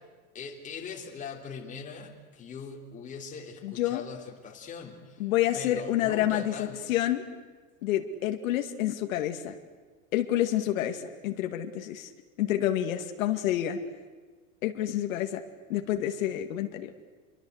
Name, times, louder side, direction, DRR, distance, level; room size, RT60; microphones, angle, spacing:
voice 1, 0.3-5.3 5.5-7.0, left 6 dB, 20° left, 1 dB, 3.5 m, -41 dB
voice 2, 3.6-4.0 5.2-7.2 7.8-9.5 10.1-12.1 12.4-13.8 14.6-15.4 15.7-16.9, left 12 dB, 80° left, 6 dB, 2.3 m, -28 dB
27.5 x 23.5 x 8.1 m, 1.4 s
supercardioid pair, 155°, 40 cm